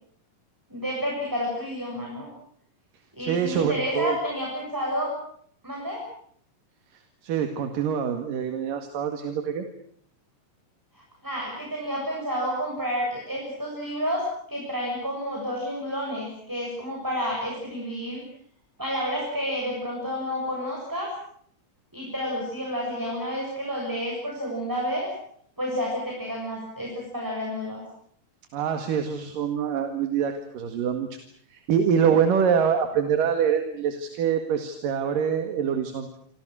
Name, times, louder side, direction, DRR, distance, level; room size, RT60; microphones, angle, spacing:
voice 1, 0.7-2.3 3.2-5.1 5.6-6.0 10.9-14.2 14.5-18.2 18.8-21.1 21.9-25.1 25.6-27.8, equal, 5° right, -2 dB, 7.1 m, -30 dB
voice 2, 3.2-4.2 7.2-9.7 28.5-31.1 31.5-36.2, right 7 dB, 75° right, 6 dB, 3.6 m, -25 dB
29.5 x 25.0 x 6.4 m, 0.63 s
omnidirectional pair, 3.9 m